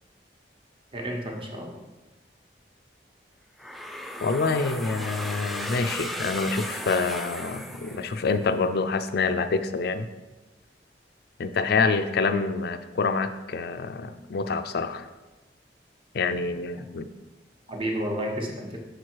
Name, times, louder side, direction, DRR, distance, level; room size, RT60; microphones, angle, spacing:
voice 1, 0.9-1.8 16.8-16.9 17.7-18.8, equal, 30° right, 0 dB, 1.1 m, -31 dB
sound 1, 3.6-8.5, equal, ahead, 0.4 m, -36 dB
voice 2, 4.2-10.1 11.4-15.1 16.1-17.1, left 4 dB, 65° left, 10 dB, 0.4 m, -26 dB
6.4 x 4.7 x 4.6 m, 1.1 s
head